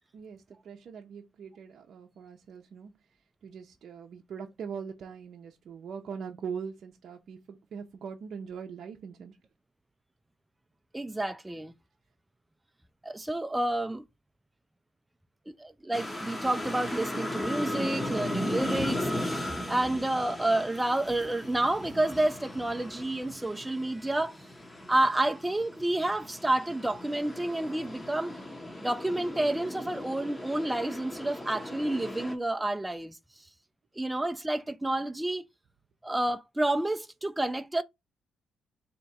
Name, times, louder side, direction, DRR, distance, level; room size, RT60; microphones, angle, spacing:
voice 1, 0.1-2.9 3.4-9.3, right 6 dB, 60° right, 0.5 m, -41 dB
voice 2, 10.9-11.7 13.0-14.1 15.5-24.4 24.9-28.3 28.8-33.2 34.0-35.4 36.0-37.8, right 1 dB, 10° right, 0.3 m, -29 dB
sound 1, 15.9-32.4, left 1 dB, 15° left, 0.7 m, -37 dB
3.4 x 2.8 x 4.1 m
cardioid pair, 90°, 0 cm